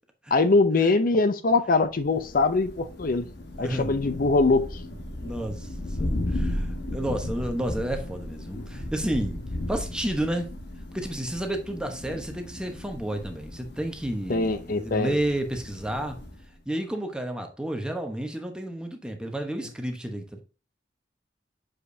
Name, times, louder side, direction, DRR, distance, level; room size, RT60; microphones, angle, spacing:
voice 1, 0.3-3.3 3.6-4.6 8.5-8.7 14.3-15.2, left 3 dB, 50° left, 0.5 m, -22 dB
Thunder, 2.0-16.5, left 1 dB, 65° left, 1.2 m, -35 dB
voice 2, 3.6-4.2 5.2-9.4 9.7-10.5 10.9-16.2 16.7-20.4, right 1 dB, 5° right, 1.0 m, -31 dB
7.4 x 5.0 x 2.7 m
head